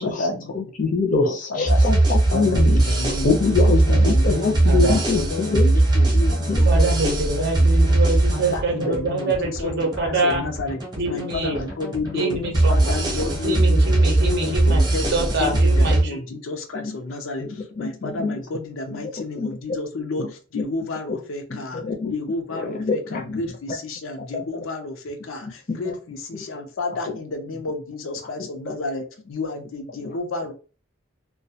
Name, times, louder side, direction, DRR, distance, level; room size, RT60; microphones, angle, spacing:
voice 1, 0.0-0.5 1.2-1.8 2.3-4.8 5.1-7.5 7.8-7.9 8.3-10.8 11.1-12.4 12.7-13.9 14.2-15.0 15.4-21.8 22.1-30.5, left 2 dB, 85° left, 4 dB, 0.5 m, -31 dB
voice 2, 0.5-1.2 1.6-2.8 3.2-5.6 6.5-6.6 16.8-16.9 17.8-18.4 19.4-19.5 20.2-20.3 20.5-20.6 21.7-22.1 22.6-23.4 24.3-24.4, left 4 dB, 40° left, 2 dB, 0.6 m, -23 dB
sound 1, 1.7-16.0, right 2 dB, 20° right, 0.7 m, -20 dB
voice 3, 4.6-5.0 6.7-10.4 11.0-11.7 12.1-16.2, right 2 dB, 55° right, 1 dB, 0.6 m, -25 dB
2.2 x 2.2 x 2.7 m, 0.35 s
head